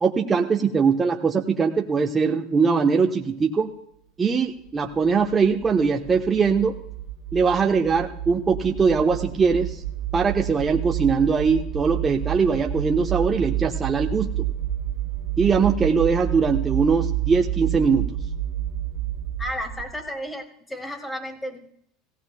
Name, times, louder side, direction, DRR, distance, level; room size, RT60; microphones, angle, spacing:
voice 1, 0.0-3.7 4.2-6.7 7.3-9.8 10.1-14.5 15.4-18.0, right 5 dB, 25° right, 1 dB, 0.9 m, -21 dB
sound 1, 4.8-20.1, right 11 dB, 60° right, 1.8 m, -29 dB
voice 2, 19.4-21.6, equal, 10° left, 3 dB, 2.3 m, -33 dB
17.5 x 16.5 x 2.2 m, 0.71 s
supercardioid pair, 100°, 0 cm